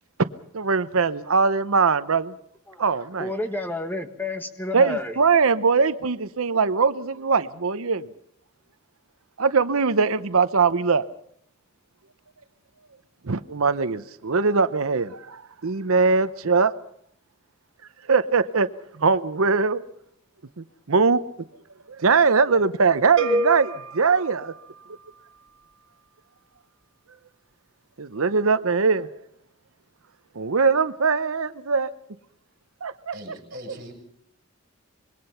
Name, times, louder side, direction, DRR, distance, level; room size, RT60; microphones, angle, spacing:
voice 1, 0.5-2.3 2.8-3.3 4.7-8.1 9.4-11.0 13.2-16.7 18.1-18.7 19.0-19.8 20.6-21.2 22.0-24.5 28.0-29.1 30.4-31.9 32.8-33.1, right 4 dB, 80° right, 13 dB, 0.8 m, -21 dB
voice 2, 3.2-5.2, left 2 dB, 10° left, 7 dB, 1.5 m, -30 dB
sound 1, 23.2-25.2, right 2 dB, 60° right, 2.2 m, -28 dB
voice 3, 33.1-33.9, equal, 40° right, 3 dB, 7.2 m, -40 dB
25.5 x 21.5 x 5.7 m, 0.68 s
head